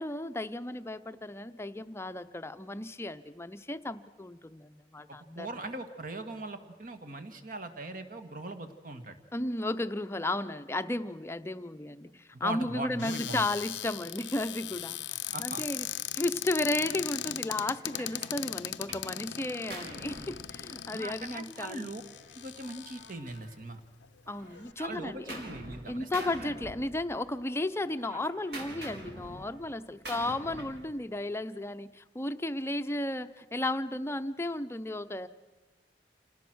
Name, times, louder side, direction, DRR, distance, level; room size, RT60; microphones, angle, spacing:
voice 1, 0.0-5.5 9.3-15.9 16.2-21.9 24.3-25.4 25.9-35.3, left 2 dB, 15° left, 10 dB, 0.7 m, -34 dB
voice 2, 5.2-9.2 12.3-13.4 15.3-15.6 20.9-22.0 22.3-23.8 24.8-26.5, right 2 dB, 50° right, 7 dB, 1.8 m, -40 dB
Cupboard open or close, 13.0-23.4 24.0-24.1 24.4-24.7, left 12 dB, 85° left, 0.6 m, -39 dB
Gunshot gunfire, 16.9-17.1 17.6-19.1 19.4-21.1 22.1-23.9 24.3-25.8 26.1-27.4 27.7-30.9, right 1 dB, 65° right, 4.2 m, -46 dB
27.5 x 18.5 x 6.2 m, 1.2 s
head